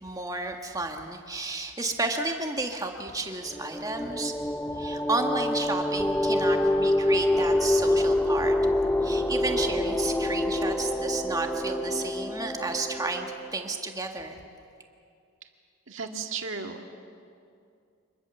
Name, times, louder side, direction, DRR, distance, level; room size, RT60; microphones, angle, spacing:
voice 1, 0.0-4.3 4.7-8.5 9.0-13.3 13.5-14.4, right 2 dB, 15° right, 3 dB, 1.7 m, -32 dB
sound 1, 3.5-13.8, left 1 dB, 5° left, 0.8 m, -26 dB
voice 2, 15.9-17.0, right 5 dB, 60° right, 3 dB, 2.1 m, -35 dB
26.0 x 21.0 x 7.1 m, 2.5 s
head